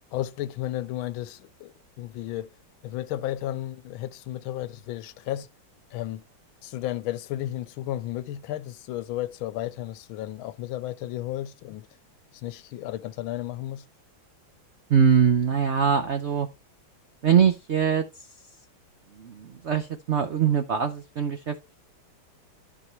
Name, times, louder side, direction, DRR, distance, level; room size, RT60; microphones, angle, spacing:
voice 1, 0.1-2.5 2.8-5.5 5.9-6.2 6.6-11.9 12.4-13.8, left 14 dB, 85° left, 1.4 m, -33 dB
voice 2, 14.9-16.5 17.2-18.3 19.1-21.8, right 7 dB, 80° right, 0.6 m, -23 dB
13.5 x 4.7 x 3.1 m
omnidirectional pair, 2.2 m